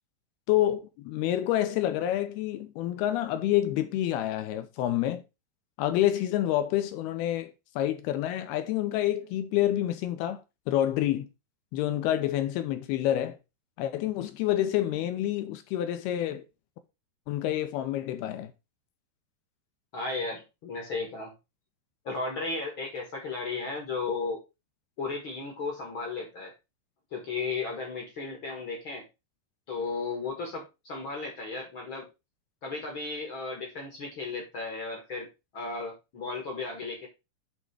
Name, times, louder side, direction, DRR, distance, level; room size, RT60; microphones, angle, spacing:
voice 1, 0.5-5.2 5.8-11.3 11.7-13.4 13.8-16.4 17.3-18.5, left 12 dB, 80° left, 2.4 m, -28 dB
voice 2, 19.9-21.3 22.0-24.4 25.0-26.5 27.1-29.0 29.7-32.1 32.6-35.3 35.5-37.1, left 3 dB, 60° left, 1.3 m, -34 dB
8.9 x 3.5 x 4.7 m
omnidirectional pair, 5.0 m